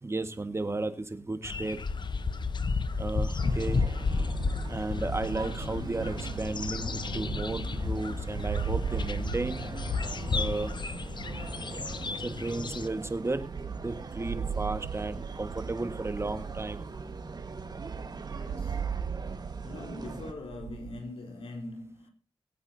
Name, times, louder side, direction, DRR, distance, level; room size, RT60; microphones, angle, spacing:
voice 1, 0.0-1.8 3.0-3.8 4.7-9.7 10.3-10.7 12.2-13.5 13.8-16.8, right 2 dB, 30° right, 1.6 m, -34 dB
sound 1, 1.4-12.9, left 4 dB, 55° left, 0.9 m, -32 dB
sound 2, 2.2-21.0, right 7 dB, 80° right, 0.5 m, -39 dB
sound 3, 3.4-20.3, right 3 dB, 45° right, 1.6 m, -42 dB
voice 2, 18.3-19.1 19.6-22.1, left 2 dB, 75° left, 3.7 m, -42 dB
22.0 x 8.7 x 2.8 m
cardioid pair, 65°, 9 cm